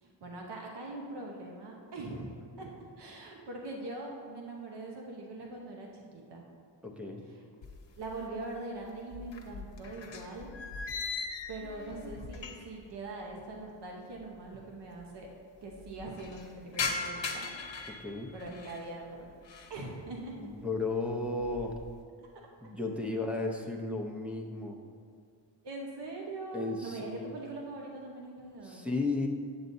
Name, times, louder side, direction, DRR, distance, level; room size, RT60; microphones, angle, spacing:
voice 1, 0.0-6.4 7.2-7.4 8.0-10.5 11.5-15.3 15.6-17.5 18.3-19.3 19.7-20.4 25.6-28.8, right 2 dB, 65° right, -1 dB, 1.0 m, -42 dB
voice 2, 6.8-7.2 17.9-18.3 20.4-21.8 22.6-24.8 26.5-27.3 28.6-29.3, left 3 dB, 5° right, 0 dB, 0.6 m, -34 dB
sound 1, 7.6-8.5 8.8-12.9 13.1-13.2 14.1-14.2 14.4-14.5 14.8-15.3 15.7-18.9 19.3-19.8 20.3-20.6 21.1-22.0, left 4 dB, 85° left, 0.9 m, -40 dB
8.7 x 8.0 x 2.7 m, 2.2 s
wide cardioid pair, 160°, 44 cm